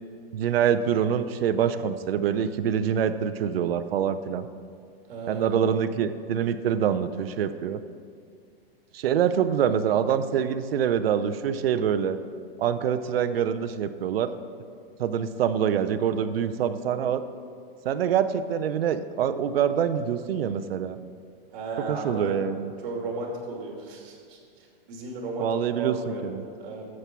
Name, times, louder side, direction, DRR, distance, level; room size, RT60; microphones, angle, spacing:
voice 1, 0.3-4.5 5.3-7.8 8.9-12.2 12.6-14.3 15.0-17.2 17.8-21.0 21.9-22.7 25.4-26.0 26.2-26.4, right 8 dB, 75° right, 10 dB, 0.7 m, -25 dB
voice 2, 5.1-5.6 21.5-22.5 22.8-24.4 24.9-25.5 25.8-26.3 26.6-26.9, right 3 dB, 60° right, 0 dB, 2.9 m, -34 dB
13.0 x 7.4 x 4.6 m, 2.2 s
hypercardioid pair, 130°, 30 cm